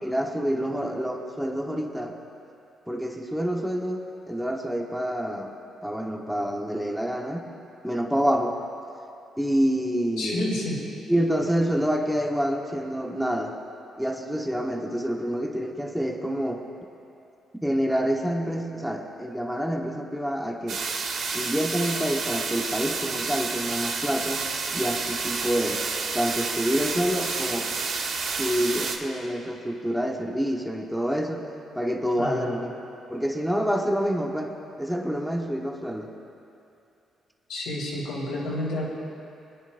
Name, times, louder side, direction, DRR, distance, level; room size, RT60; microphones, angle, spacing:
voice 1, 0.0-2.2 2.9-5.5 5.8-7.4 7.8-8.6 9.4-10.5 11.1-13.6 14.0-16.6 17.6-20.8 21.3-24.4 24.7-25.8 26.1-27.7 28.4-31.5 31.7-32.7 33.1-34.5 34.8-36.1, equal, ahead, 1 dB, 1.2 m, -27 dB
voice 2, 10.2-10.8 32.2-32.5 37.5-38.9, left 1 dB, 85° left, -4 dB, 2.8 m, -29 dB
sound 1, 20.7-29.0, right 4 dB, 65° right, 1.1 m, -30 dB
24.0 x 10.0 x 2.6 m, 2.6 s
cardioid pair, 90°, 0 cm